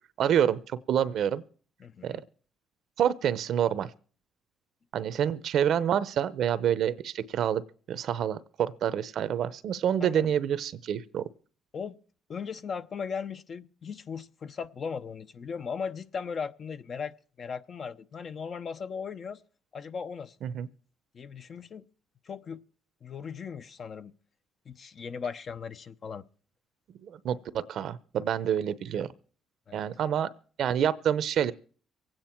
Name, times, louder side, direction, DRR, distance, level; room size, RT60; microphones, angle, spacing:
voice 1, 0.2-1.4 2.0-2.2 3.0-3.9 4.9-7.6 7.9-11.2 20.4-20.7 27.0-29.1 29.7-30.3 30.6-31.5, right 9 dB, 65° right, 0.7 m, -27 dB
voice 2, 1.8-2.2 10.0-10.3 11.7-12.0 12.3-19.4 19.7-20.4 21.1-21.9 22.2-22.6 23.0-24.1 24.7-26.2 29.7-29.9, left 6 dB, 45° left, 0.8 m, -37 dB
24.0 x 9.0 x 4.5 m
cardioid pair, 100°, 0 cm